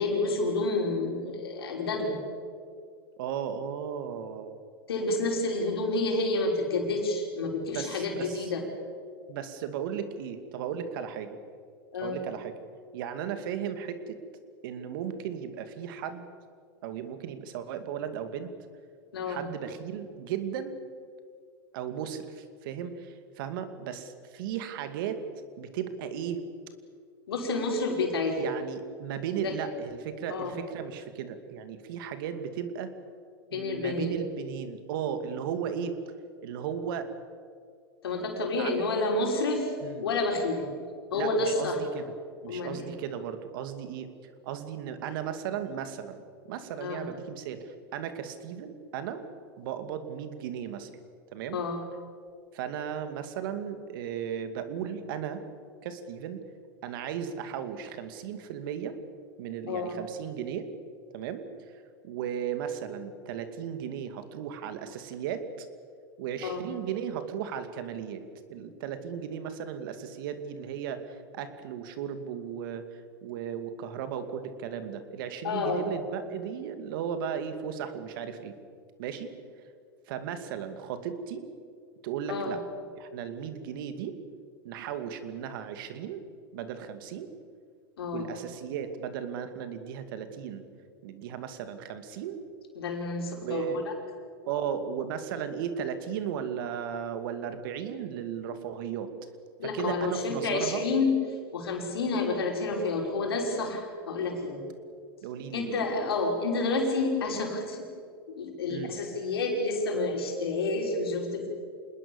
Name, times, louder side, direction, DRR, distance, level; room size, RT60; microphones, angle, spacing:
voice 1, 0.0-2.2 4.9-8.6 11.9-12.2 19.1-19.5 27.3-28.5 29.4-29.5 30.3-30.6 33.5-34.1 38.0-39.7 40.0-40.7 41.1-41.8 42.5-42.9 46.8-47.0 51.5-51.8 59.7-60.0 66.4-66.6 75.4-75.9 82.3-82.5 88.0-88.3 92.8-93.8 99.6-101.1 101.5-104.6 105.5-107.9 108.4-111.5, left 3 dB, 85° left, 2 dB, 5.7 m, -29 dB
voice 2, 3.2-4.6 7.7-8.5 9.3-11.4 12.0-12.6 12.9-14.2 14.6-16.3 16.8-18.5 19.3-20.8 21.7-25.2 25.6-26.4 28.4-32.9 33.5-36.0 36.4-37.1 38.6-38.7 39.8-40.1 41.1-42.1 42.4-44.1 44.4-49.2 49.6-50.9 51.3-51.6 52.5-55.4 55.8-56.4 56.8-59.0 59.4-60.7 61.1-61.5 62.0-65.7 66.2-68.2 68.5-78.5 79.0-79.3 80.1-81.5 82.0-82.6 83.0-84.2 84.6-86.2 86.5-87.3 88.1-90.6 91.0-92.4 93.4-93.8 94.4-99.1 99.6-100.8 105.2-105.8 108.7-108.9, right 8 dB, 65° right, 9 dB, 2.6 m, -36 dB
27.0 x 20.5 x 7.3 m, 2.1 s
hypercardioid pair, 115°, 12 cm